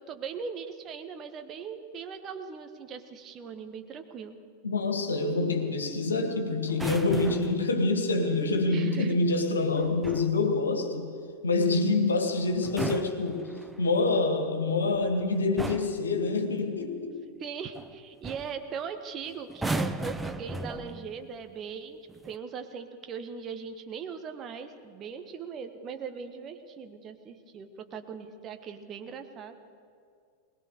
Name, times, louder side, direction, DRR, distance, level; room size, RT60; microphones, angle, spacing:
voice 1, 0.1-4.3 8.7-9.1 17.4-22.0 22.2-29.6, right 6 dB, 30° right, 6 dB, 1.4 m, -39 dB
voice 2, 4.6-11.1 11.4-13.5 13.8-17.2, left 3 dB, 70° left, 4 dB, 2.2 m, -26 dB
sound 1, 6.7-7.7 9.8-10.4 12.5-13.9 14.9-15.2 15.6-16.1 17.8-17.9 18.2-18.6 19.5-21.2 22.1-22.4, right 2 dB, 10° right, 0.8 m, -35 dB
21.0 x 20.0 x 6.8 m, 2.3 s
figure-of-eight pair, 90°, 0 cm